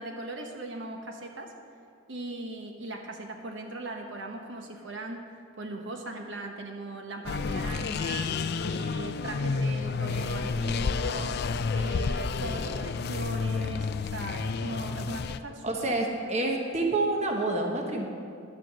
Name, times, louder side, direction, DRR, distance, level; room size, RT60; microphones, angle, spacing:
voice 1, 0.0-1.5 2.1-8.4 8.7-11.4 11.7-15.9, right 2 dB, 60° right, 3 dB, 1.1 m, -39 dB
sound 1, 7.3-15.4, left 4 dB, 50° left, 0.4 m, -30 dB
voice 2, 15.6-18.1, right 2 dB, 30° right, 1 dB, 1.0 m, -28 dB
11.0 x 7.7 x 7.4 m, 2.4 s
head